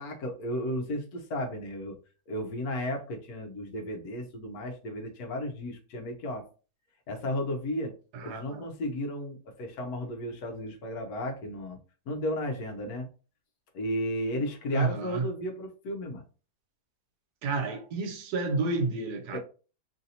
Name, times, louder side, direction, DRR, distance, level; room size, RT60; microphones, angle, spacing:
voice 1, 0.0-2.0 2.3-6.5 7.1-7.9 8.2-11.8 12.1-13.1 13.7-16.2 19.3-19.4, left 1 dB, 70° left, 1.1 m, -34 dB
voice 2, 8.1-8.6 14.7-15.2 17.4-19.4, right 4 dB, 75° right, 1.1 m, -30 dB
3.2 x 2.6 x 2.7 m
omnidirectional pair, 1.7 m